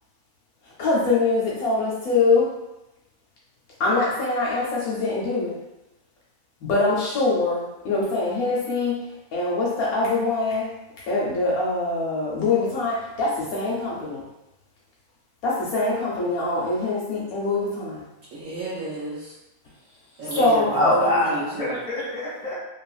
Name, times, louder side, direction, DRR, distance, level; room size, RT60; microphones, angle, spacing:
voice 1, 0.8-2.5 3.8-5.6 6.7-9.0 9.3-10.7 11.1-14.2 15.4-18.0 20.4-20.8, left 3 dB, 70° left, -5 dB, 1.0 m, -23 dB
voice 2, 18.3-19.3 20.2-21.8, right 2 dB, 65° right, -7 dB, 0.9 m, -31 dB
voice 3, 20.7-22.5, left 1 dB, 45° left, -9 dB, 1.1 m, -24 dB
3.1 x 2.4 x 2.3 m, 0.96 s
omnidirectional pair, 1.8 m